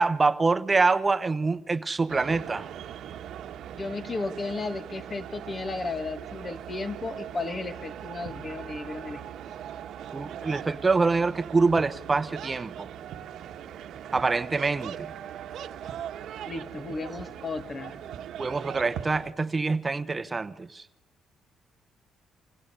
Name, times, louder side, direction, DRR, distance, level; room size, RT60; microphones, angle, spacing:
voice 1, 0.0-2.7 10.1-12.9 14.1-15.1 18.4-20.8, right 4 dB, 25° right, 1.0 m, -25 dB
sound 1, 2.1-19.3, right 10 dB, 75° right, 1.4 m, -40 dB
voice 2, 3.7-9.2 16.4-18.0, left 3 dB, 35° left, 2.1 m, -34 dB
28.5 x 27.0 x 6.9 m
cardioid pair, 90°, 0 cm